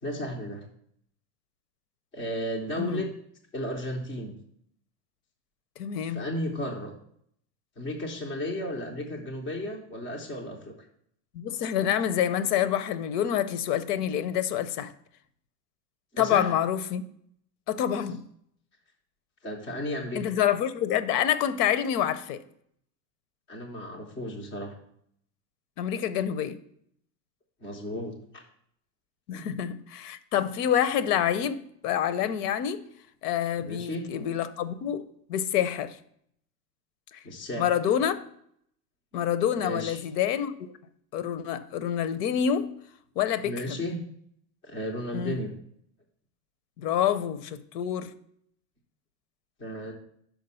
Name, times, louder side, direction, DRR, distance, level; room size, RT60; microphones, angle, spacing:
voice 1, 0.0-0.7 2.1-3.1 3.5-4.3 6.1-6.9 7.8-10.7 16.1-16.5 19.4-20.4 23.5-24.8 27.6-28.4 29.3-29.4 33.6-34.0 37.2-37.7 39.6-40.0 43.4-44.0 44.6-45.5 49.6-49.9, equal, 10° left, 0.3 m, -34 dB
voice 2, 5.8-6.2 11.3-14.9 16.2-17.0 17.7-18.2 20.1-22.4 25.8-26.6 29.3-32.8 33.2-36.0 37.1-37.2 37.6-38.2 39.1-40.7 41.1-42.7 43.2-43.8 45.1-45.4 46.8-48.1, left 9 dB, 70° left, 0.7 m, -27 dB
5.8 x 4.6 x 5.4 m
supercardioid pair, 150°, 50 cm